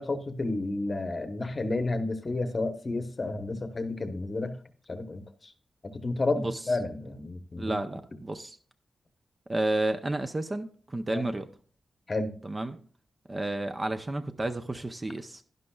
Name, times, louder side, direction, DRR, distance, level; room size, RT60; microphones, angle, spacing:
voice 1, 0.0-4.6 4.9-5.5 5.8-7.8 11.1-11.2 12.1-12.4, left 2 dB, 30° left, 10 dB, 0.9 m, -31 dB
voice 2, 7.6-8.6 9.5-11.5 12.4-12.8 13.3-15.4, right 2 dB, 20° right, 8 dB, 0.5 m, -31 dB
11.5 x 11.0 x 2.3 m, 0.43 s
wide cardioid pair, 155°, 0 cm